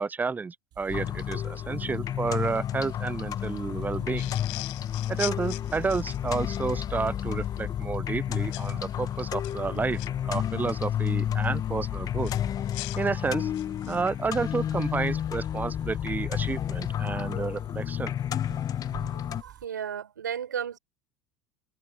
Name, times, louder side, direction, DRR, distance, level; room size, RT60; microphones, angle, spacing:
voice 1, 0.0-4.3 5.1-12.3 13.0-13.5 13.9-18.2, right 4 dB, 15° right, 0.6 m, -31 dB
sound 1, 0.7-19.6, right 12 dB, 45° right, 7.1 m, -52 dB
sound 2, 0.9-19.4, left 10 dB, 40° left, 1.2 m, -31 dB
sound 3, 4.2-6.6 8.5-8.7 9.3-10.1 12.2-14.1, left 39 dB, 65° left, 4.4 m, -40 dB
voice 2, 19.0-20.8, right 8 dB, 85° right, 4.7 m, -35 dB
hypercardioid pair, 75°, 10 cm